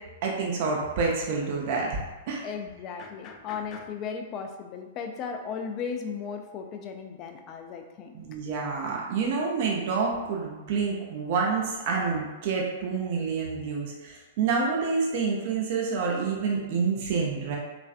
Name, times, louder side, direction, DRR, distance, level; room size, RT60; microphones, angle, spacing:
voice 1, 0.2-2.4 8.1-17.6, right 5 dB, 50° right, -2 dB, 0.5 m, -28 dB
voice 2, 2.4-8.1, left 6 dB, 35° left, 4 dB, 0.3 m, -36 dB
3.1 x 2.4 x 2.4 m, 1.2 s
figure-of-eight pair, 105°, 0 cm